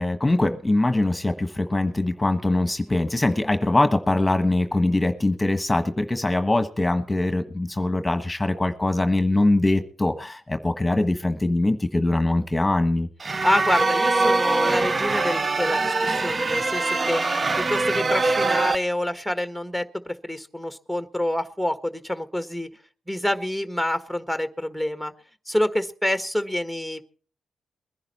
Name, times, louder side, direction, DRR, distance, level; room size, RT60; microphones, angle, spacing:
voice 1, 0.0-13.1, left 2 dB, 15° left, 8 dB, 1.3 m, -22 dB
sound 1, 13.2-18.8, right 3 dB, 40° right, 0.7 m, -23 dB
voice 2, 13.4-17.2 17.6-22.7 23.1-25.1 25.5-27.0, left 1 dB, 5° right, 8 dB, 1.5 m, -27 dB
21.0 x 10.5 x 4.3 m, 0.43 s
supercardioid pair, 55°, 0 cm